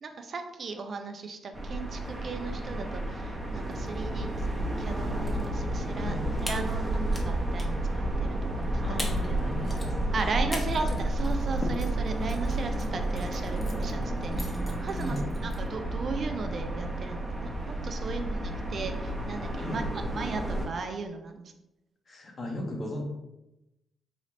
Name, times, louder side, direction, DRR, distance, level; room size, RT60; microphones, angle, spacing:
voice 1, 0.0-6.1 6.4-9.5 10.1-14.5 14.8-15.2 15.4-19.8 20.1-21.5, right 4 dB, 55° right, 6 dB, 0.4 m, -37 dB
sound 1, 1.5-20.7, right 1 dB, 15° right, 0.9 m, -31 dB
sound 2, 5.0-5.5 5.8-5.9 6.4-7.3 7.6-7.9 8.6-8.7 9.0-9.3 9.6-15.7, left 1 dB, 20° left, 0.9 m, -41 dB
voice 2, 5.9-6.3 8.8-10.5 15.0-15.3 18.0-18.2 19.6-19.8 22.1-23.0, left 1 dB, 50° left, 1 dB, 1.1 m, -38 dB
3.9 x 2.5 x 3.2 m, 0.92 s
supercardioid pair, 55°, 0 cm